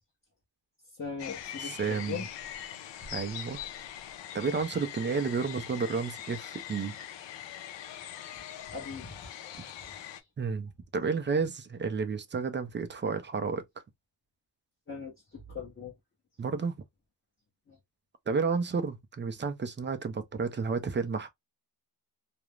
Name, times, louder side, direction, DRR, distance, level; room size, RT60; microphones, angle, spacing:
voice 1, 0.9-2.3 8.7-9.3 14.9-15.9 17.7-17.8, left 5 dB, 30° left, 0.8 m, -40 dB
sound 1, 1.2-10.2, left 10 dB, 75° left, 0.6 m, -42 dB
voice 2, 1.6-2.2 3.1-3.6 4.3-6.9 10.4-13.6 16.4-16.7 18.3-21.3, right 5 dB, 30° right, 0.3 m, -31 dB
2.4 x 2.0 x 3.0 m
wide cardioid pair, 145°, 43 cm